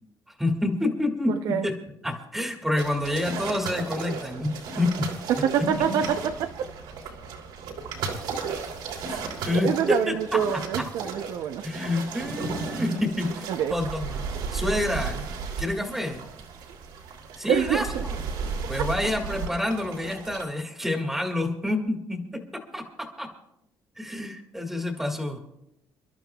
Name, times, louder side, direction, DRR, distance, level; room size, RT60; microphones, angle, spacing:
voice 1, 0.4-1.7 2.0-5.1 5.6-5.7 9.1-10.4 11.6-14.2 14.5-15.3 15.6-16.2 17.4-18.1 18.7-23.3 24.0-25.4, left 1 dB, 5° right, 4 dB, 1.8 m, -28 dB
sound 1, 2.8-20.4, right 5 dB, 90° right, 3.1 m, -34 dB
voice 2, 5.3-6.7 9.6-11.6 13.5-13.7 17.5-18.0, right 9 dB, 60° right, 7 dB, 0.5 m, -26 dB
29.5 x 12.5 x 2.3 m, 0.83 s
cardioid pair, 165°, 8 cm